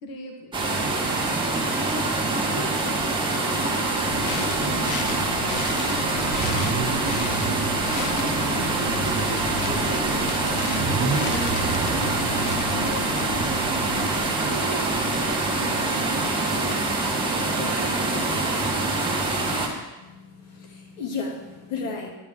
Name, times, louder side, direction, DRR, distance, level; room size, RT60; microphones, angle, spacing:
voice 1, 0.0-1.3 1.8-5.3 5.7-7.6 7.9-8.8 9.2-11.5 11.9-13.5 13.9-16.8 17.4-18.4, equal, 45° left, 1 dB, 1.4 m, -38 dB
sound 1, 0.5-19.7, right 2 dB, 10° right, 1.2 m, -25 dB
sound 2, 4.0-14.2, left 6 dB, 70° left, 1.0 m, -36 dB
Car / Idling / Accelerating revving vroom, 4.1-16.2, right 4 dB, 60° right, 1.4 m, -33 dB
voice 2, 20.0-22.1, left 4 dB, 90° left, 0 dB, 2.5 m, -33 dB
10.0 x 9.7 x 3.6 m, 1.1 s
cardioid pair, 160°, 49 cm